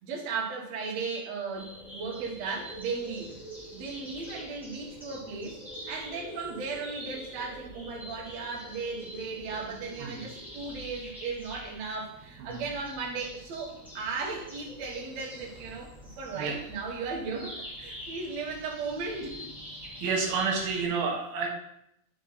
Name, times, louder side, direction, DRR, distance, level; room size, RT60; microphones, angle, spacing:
voice 1, 0.0-3.4 3.7-5.6 5.9-15.9 16.2-19.5, right 4 dB, 55° right, -3 dB, 2.3 m, -36 dB
sound 1, 1.5-20.8, equal, ahead, 1.6 m, -45 dB
voice 2, 20.0-21.5, right 5 dB, 80° right, 0 dB, 3.0 m, -30 dB
9.1 x 5.0 x 4.0 m, 0.76 s
omnidirectional pair, 4.2 m